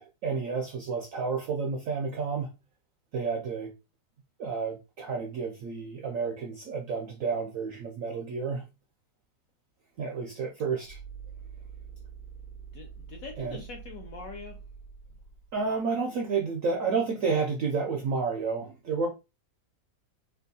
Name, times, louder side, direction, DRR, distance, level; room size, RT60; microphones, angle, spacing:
voice 1, 0.0-2.5 3.1-3.7 4.4-8.6 10.0-11.0 13.4-13.6 15.5-19.1, right 5 dB, 75° right, 0.7 m, -30 dB
sound 1, 10.8-15.7, right 7 dB, 80° left, 2.4 m, -45 dB
voice 2, 12.7-14.6, left 5 dB, 65° left, 0.8 m, -43 dB
4.4 x 2.4 x 2.7 m
omnidirectional pair, 2.0 m